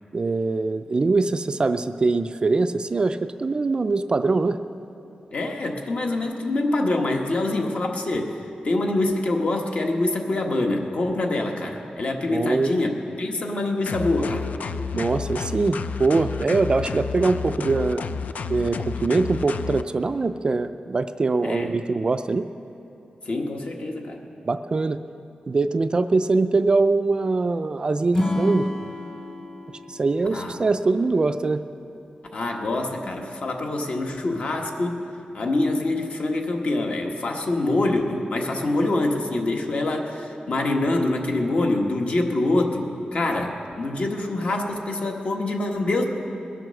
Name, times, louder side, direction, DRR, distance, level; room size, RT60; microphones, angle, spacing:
voice 1, 0.1-4.6 12.3-12.7 14.9-22.5 24.4-25.0 25.5-28.7 29.9-31.6, right 3 dB, 35° right, 10 dB, 0.3 m, -23 dB
voice 2, 5.3-8.4 8.6-12.9 13.2-14.5 21.4-21.7 23.2-24.2 30.3-30.6 32.3-35.0 35.3-46.0, left 2 dB, 55° left, 2 dB, 1.3 m, -25 dB
sound 1, 13.9-19.8, left 5 dB, 70° left, 0.4 m, -31 dB
Acoustic guitar / Strum, 28.1-31.4, left 1 dB, 25° left, 1.4 m, -29 dB
21.0 x 7.6 x 6.5 m, 2.9 s
wide cardioid pair, 170°, 3 cm